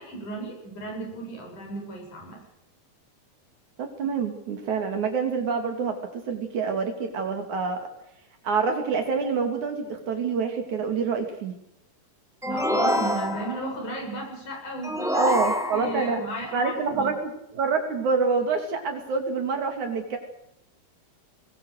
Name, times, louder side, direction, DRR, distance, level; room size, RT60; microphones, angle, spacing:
voice 1, 0.0-2.4 12.4-17.1, right 1 dB, 55° left, 1 dB, 8.1 m, -35 dB
voice 2, 3.8-7.9 8.4-11.6 15.2-16.2 16.5-17.1 17.5-20.2, right 5 dB, 55° right, 5 dB, 3.8 m, -26 dB
sound 1, 12.4-13.8 14.8-16.2, equal, ahead, 1.4 m, -26 dB
23.0 x 21.0 x 6.6 m, 0.80 s
omnidirectional pair, 4.2 m